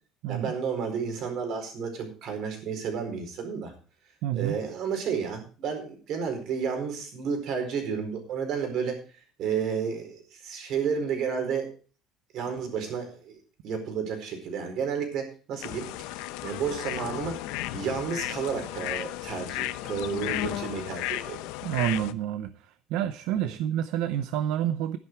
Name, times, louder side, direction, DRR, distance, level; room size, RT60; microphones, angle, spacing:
voice 1, 0.3-3.7 4.3-9.0 9.4-11.7 12.3-13.4 13.6-21.4 23.4-23.5, right 6 dB, 50° right, 4.5 m, -31 dB
voice 2, 4.2-4.5 21.6-25.0, right 11 dB, 70° right, 0.6 m, -29 dB
sound 1, 15.6-22.1, left 16 dB, 80° left, 0.8 m, -34 dB
12.0 x 10.5 x 4.6 m
cardioid pair, 170°, 0 cm